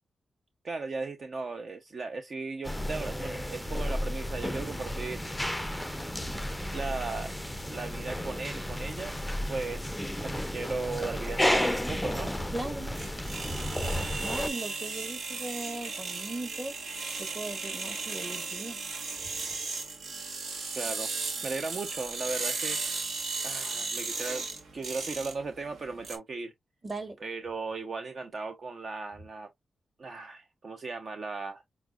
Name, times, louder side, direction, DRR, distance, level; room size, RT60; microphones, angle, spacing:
voice 1, 0.6-5.2 6.7-7.4 7.7-9.1 9.5-9.9 10.2-12.3 20.7-21.1 21.4-22.8 23.4-24.5 24.7-26.5 27.2-29.5 30.0-31.6, right 3 dB, 55° right, 0.6 m, -36 dB
sound 1, 2.6-14.5, left 1 dB, 5° left, 0.5 m, -32 dB
sound 2, 11.9-26.2, right 4 dB, 75° right, 1.0 m, -36 dB
voice 2, 12.5-12.9 14.2-16.7 17.2-18.8 26.8-27.2, right 2 dB, 30° right, 1.4 m, -38 dB
5.7 x 2.1 x 2.3 m
cardioid pair, 85°, 0 cm